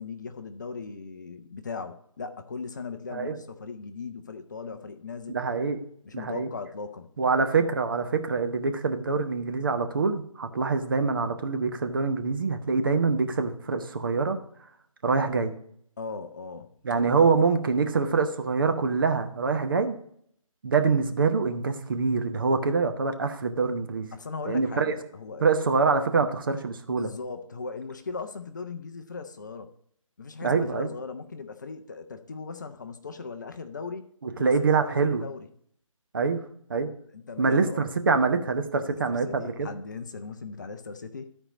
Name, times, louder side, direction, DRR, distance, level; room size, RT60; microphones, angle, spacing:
voice 1, 0.0-5.4 6.0-7.1 16.0-16.7 24.1-25.5 26.9-29.7 30.2-34.1 34.4-35.5 37.1-37.9 38.8-41.3, left 4 dB, 35° left, 8 dB, 0.6 m, -38 dB
voice 2, 5.3-5.8 6.1-6.5 7.2-14.4 15.0-15.5 16.8-19.9 20.6-24.1 24.5-24.9 25.4-27.1 30.4-30.9 34.2-35.3 36.1-36.4 36.7-36.9 37.4-39.7, right 4 dB, 40° right, 7 dB, 0.8 m, -25 dB
13.0 x 4.5 x 5.1 m, 0.66 s
figure-of-eight pair, 155°, 18 cm